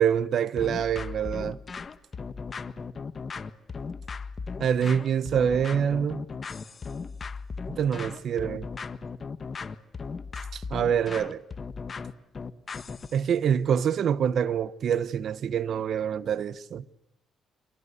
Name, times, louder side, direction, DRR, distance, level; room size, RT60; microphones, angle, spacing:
voice 1, 0.0-1.6 4.6-6.2 7.7-8.7 10.5-11.4 13.1-16.8, right 8 dB, 65° right, 1.1 m, -26 dB
sound 1, 0.6-13.2, left 5 dB, 40° left, 1.4 m, -37 dB
28.0 x 24.0 x 8.2 m
cardioid pair, 90°, 0 cm